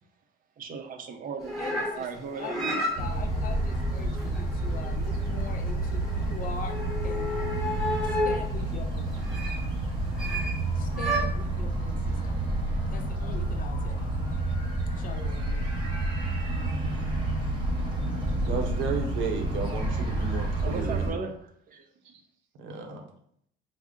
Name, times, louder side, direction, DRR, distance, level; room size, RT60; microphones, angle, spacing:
voice 1, 0.6-1.6 1.9-2.6 20.6-21.9, right 5 dB, 45° right, 6 dB, 0.6 m, -37 dB
sound 1, 1.4-8.5 9.2-9.6 10.2-10.6 10.9-11.2, equal, ahead, 1.1 m, -32 dB
voice 2, 1.6-2.1 2.4-7.3 8.0-9.2 10.7-12.4 12.9-14.1 14.9-15.7, left 5 dB, 45° left, 5 dB, 0.6 m, -42 dB
sound 2, 3.0-21.1, right 2 dB, 25° right, 1.0 m, -29 dB
voice 3, 18.4-21.2 22.6-23.0, right 5 dB, 80° right, 3 dB, 0.8 m, -33 dB
3.6 x 2.0 x 3.7 m, 0.67 s
cardioid pair, 100°, 20 cm